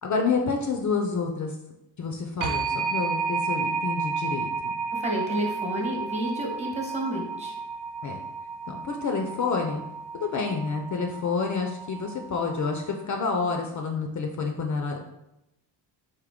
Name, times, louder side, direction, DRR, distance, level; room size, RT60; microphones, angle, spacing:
voice 1, 0.0-1.6 2.0-4.8 8.0-8.2 8.7-9.8 10.1-15.0, left 4 dB, 45° left, 3 dB, 0.5 m, -28 dB
sound 1, 2.4-13.0, right 5 dB, 65° right, 0.5 m, -32 dB
voice 2, 4.9-7.5, right 1 dB, 15° right, -1 dB, 1.0 m, -30 dB
3.6 x 2.6 x 3.6 m, 0.90 s
cardioid pair, 90°, 43 cm